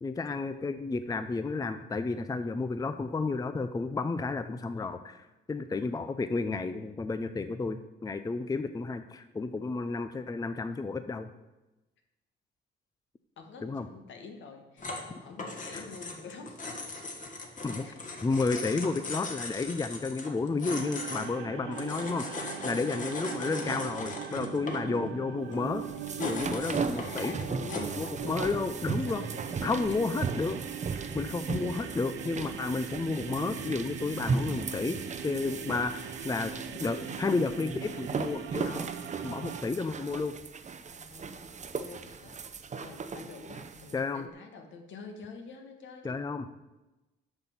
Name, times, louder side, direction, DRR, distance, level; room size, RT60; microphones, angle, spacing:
voice 1, 0.0-11.3 13.6-13.9 15.7-15.8 17.6-17.9 18.2-25.8 26.2-27.4 28.0-29.2 29.6-30.6 30.9-36.5 36.8-38.9 39.2-40.3 43.9-44.2 46.0-46.6, left 3 dB, 20° left, 10 dB, 0.5 m, -32 dB
voice 2, 13.4-16.6 17.5-18.0 21.2-21.4 24.5-24.8 26.9-28.8 29.0-30.1 35.4-35.7 40.9-46.2, left 4 dB, 70° left, 4 dB, 1.6 m, -47 dB
sound 1, 14.8-28.0, left 3 dB, 40° left, 1.8 m, -39 dB
sound 2, 20.7-39.6, right 8 dB, 80° right, 0.9 m, -41 dB
sound 3, 25.6-44.0, right 5 dB, 35° right, 0.8 m, -37 dB
8.0 x 5.9 x 7.1 m, 1.0 s
cardioid pair, 90°, 20 cm